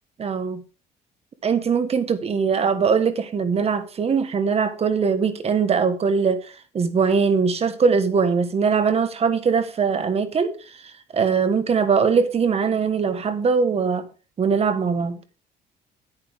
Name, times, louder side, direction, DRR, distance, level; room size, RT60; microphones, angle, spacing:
voice 1, 0.2-0.6 1.4-6.5 6.7-10.5 10.8-14.1 14.4-15.2, right 5 dB, 35° right, 1.3 m, -21 dB
9.4 x 9.2 x 3.6 m
cardioid pair, 110°, 17 cm